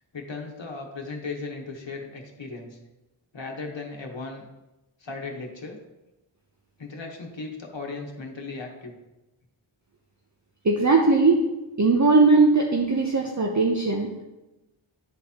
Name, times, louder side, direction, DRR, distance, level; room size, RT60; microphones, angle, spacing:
voice 1, 0.1-2.8 3.3-4.4 5.0-5.8 6.8-8.9, left 3 dB, 65° left, 0 dB, 1.2 m, -36 dB
voice 2, 10.6-11.4 11.8-14.2, right 3 dB, 35° right, 0 dB, 0.7 m, -19 dB
10.5 x 3.9 x 2.9 m, 1.0 s
wide cardioid pair, 40°, 48 cm